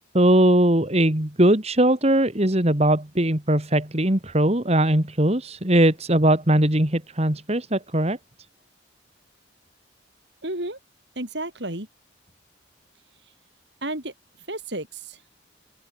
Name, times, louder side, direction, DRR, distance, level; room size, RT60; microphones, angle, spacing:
voice 1, 0.1-8.2, right 1 dB, 35° right, 2.6 m, -20 dB
voice 2, 10.4-10.8 11.2-11.9 13.8-14.1 14.5-15.2, right 1 dB, 60° right, 7.2 m, -32 dB
open air
head